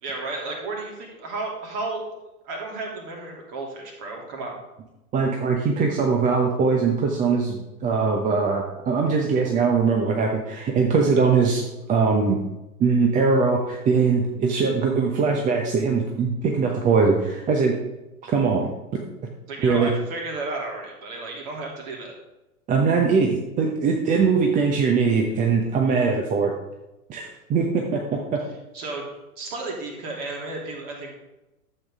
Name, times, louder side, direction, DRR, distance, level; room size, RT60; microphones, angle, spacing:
voice 1, 0.0-2.0 2.4-4.6 19.5-22.1 28.7-29.0 29.4-31.1, right 3 dB, 40° right, 0 dB, 2.9 m, -33 dB
voice 2, 5.1-11.6 11.9-12.4 12.8-17.7 18.2-18.7 19.6-19.9 22.7-26.5 27.1-28.4, right 5 dB, 15° right, 1 dB, 0.8 m, -21 dB
12.0 x 7.7 x 3.6 m, 0.99 s
figure-of-eight pair, 100°, 46 cm